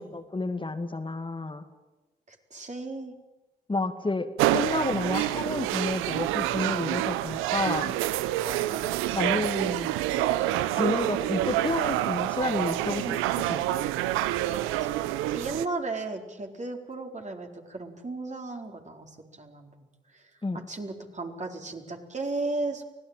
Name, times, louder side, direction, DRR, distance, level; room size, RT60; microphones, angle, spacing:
voice 1, 0.0-1.6 3.7-7.9 9.1-9.9 10.7-13.8 20.4-20.6, left 2 dB, 25° left, 6 dB, 2.3 m, -30 dB
voice 2, 2.3-3.2 8.6-9.0 14.6-22.8, right 3 dB, 35° right, 2 dB, 4.4 m, -36 dB
sound 1, 4.4-15.7, right 14 dB, 80° right, 0.8 m, -27 dB
24.5 x 17.0 x 9.2 m, 1.1 s
hypercardioid pair, 40°, 21 cm